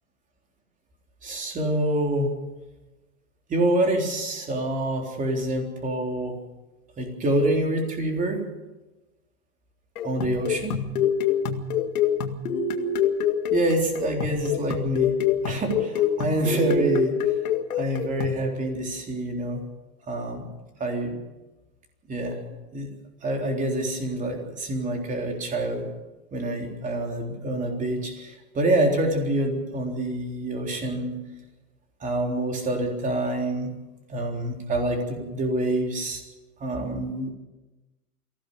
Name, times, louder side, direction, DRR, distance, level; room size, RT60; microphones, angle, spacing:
voice 1, 1.2-2.3 3.5-6.4 7.0-8.5 10.0-10.8 13.5-15.1 15.4-17.2 17.7-19.6 20.1-20.5 20.8-21.2 22.1-22.4 22.7-22.9 23.2-25.9 26.3-31.2 32.0-33.7 34.1-36.2 36.6-37.3, right 1 dB, 20° right, 2 dB, 3.7 m, -26 dB
sound 1, 10.0-18.5, left 7 dB, 80° left, 2.1 m, -26 dB
23.5 x 16.5 x 7.0 m, 1.1 s
supercardioid pair, 150°, 43 cm